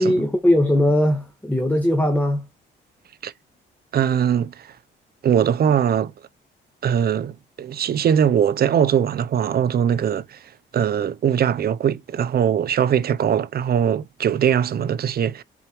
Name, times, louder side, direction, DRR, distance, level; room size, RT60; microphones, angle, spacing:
voice 1, 0.0-2.5, left 1 dB, 10° left, 1.5 m, -19 dB
voice 2, 3.9-4.7 5.2-6.1 6.8-15.4, right 8 dB, 50° right, 0.6 m, -21 dB
7.1 x 4.4 x 3.0 m
cardioid pair, 90°, 20 cm